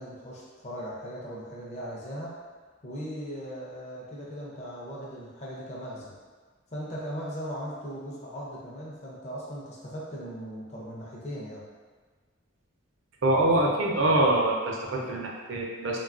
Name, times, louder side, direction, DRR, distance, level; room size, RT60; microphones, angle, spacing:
voice 1, 0.0-2.4 2.8-6.1 6.7-11.6, equal, 35° left, -5 dB, 0.5 m, -38 dB
voice 2, 13.2-16.0, right 1 dB, 70° right, -1 dB, 0.5 m, -24 dB
3.2 x 2.2 x 2.4 m, 1.5 s
head